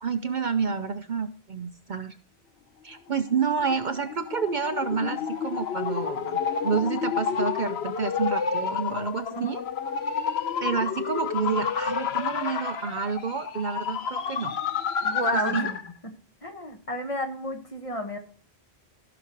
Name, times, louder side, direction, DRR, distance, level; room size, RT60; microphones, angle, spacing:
voice 1, 0.0-2.1 2.8-9.6 10.6-14.5 15.3-15.7, right 6 dB, 50° right, 9 dB, 0.7 m, -29 dB
sound 1, 3.2-15.9, left 6 dB, 75° left, 1.1 m, -30 dB
voice 2, 15.0-15.8 16.4-18.2, equal, 30° left, 4 dB, 1.3 m, -31 dB
15.5 x 6.1 x 3.0 m, 0.42 s
omnidirectional pair, 1.1 m